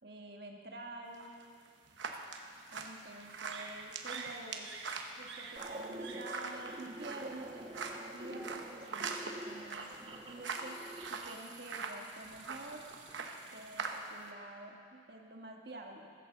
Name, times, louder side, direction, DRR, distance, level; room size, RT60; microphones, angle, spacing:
voice 1, 0.0-1.3 2.7-12.8 13.4-16.1, right 2 dB, 55° right, 1 dB, 1.4 m, -49 dB
sound 1, 1.1-14.3, right 4 dB, 75° right, 1.0 m, -43 dB
sound 2, 5.6-11.5, right 1 dB, 30° right, 1.0 m, -46 dB
sound 3, 9.9-10.6 12.3-13.4, equal, 20° left, 2.2 m, -64 dB
15.0 x 8.4 x 6.9 m, 2.2 s
head